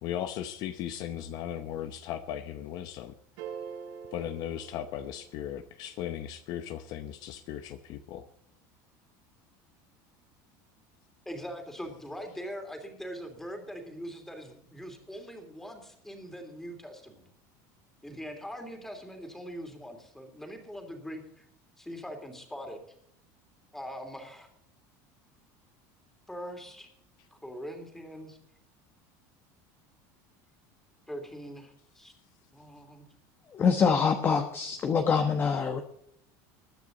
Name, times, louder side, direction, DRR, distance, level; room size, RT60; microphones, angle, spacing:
voice 1, 0.0-3.1 4.1-8.3, left 10 dB, 50° left, 10 dB, 0.9 m, -37 dB
sound 1, 3.4-5.6, right 7 dB, 85° right, 6.7 m, -44 dB
voice 2, 11.2-17.2 18.0-21.4 21.8-22.8 23.7-24.5 26.3-26.9 27.3-28.4 31.1-32.1 32.5-33.1, equal, 5° left, 5 dB, 2.9 m, -42 dB
voice 3, 33.5-35.8, left 6 dB, 25° left, 6 dB, 1.1 m, -25 dB
21.0 x 9.4 x 3.9 m, 0.70 s
cardioid pair, 160°, 9 cm